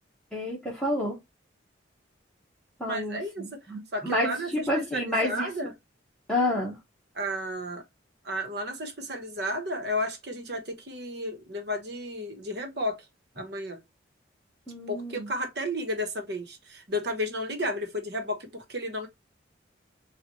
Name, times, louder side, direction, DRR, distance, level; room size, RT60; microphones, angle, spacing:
voice 1, 0.3-1.1 2.8-5.5 6.3-6.8 14.7-15.3, left 1 dB, 5° left, 1.1 m, -29 dB
voice 2, 2.8-3.6 3.9-5.7 7.1-7.8 8.2-13.0 13.3-13.8 14.9-19.1, equal, 60° right, 1.2 m, -33 dB
7.1 x 2.5 x 3.0 m
head